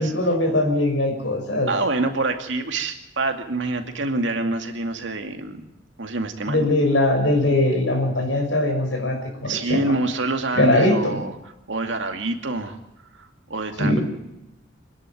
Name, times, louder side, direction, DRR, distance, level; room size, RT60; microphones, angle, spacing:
voice 1, 0.0-1.7 6.5-9.9 10.6-11.1 13.8-14.0, left 1 dB, 70° left, 4 dB, 6.0 m, -21 dB
voice 2, 1.7-5.6 6.0-6.7 9.4-11.4 11.7-12.8 13.1-14.0, right 2 dB, 70° right, 5 dB, 2.3 m, -26 dB
25.0 x 11.0 x 9.3 m, 0.90 s
head